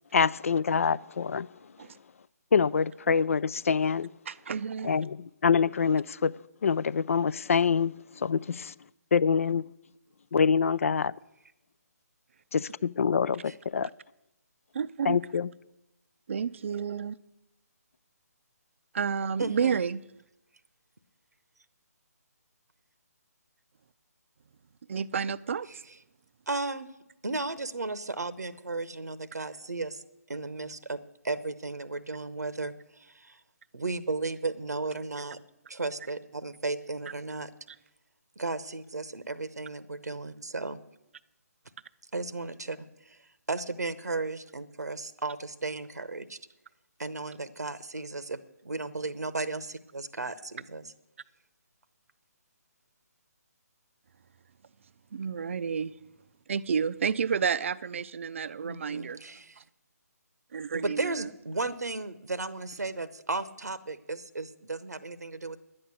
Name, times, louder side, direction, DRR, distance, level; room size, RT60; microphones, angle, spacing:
voice 1, 0.1-1.5 2.5-4.1 4.8-7.9 8.2-8.7 9.1-9.7 10.3-11.1 12.5-13.9 15.0-15.5, left 6 dB, 55° left, 0.4 m, -25 dB
voice 2, 4.3-4.9 14.7-15.2 16.3-17.2 18.9-20.0 24.9-25.8 55.1-55.9 56.5-59.2 59.6-59.7 60.5-61.3, right 6 dB, 50° right, 0.5 m, -30 dB
voice 3, 19.4-19.8 26.5-26.9 27.2-30.0 30.3-31.0 31.2-33.4 33.7-35.4 35.7-37.5 38.4-40.8 42.1-42.8 43.0-46.4 47.0-50.8 58.6-59.6 60.8-65.6, right 3 dB, 80° right, 0.9 m, -35 dB
11.0 x 8.7 x 8.2 m
figure-of-eight pair, 145°, 9 cm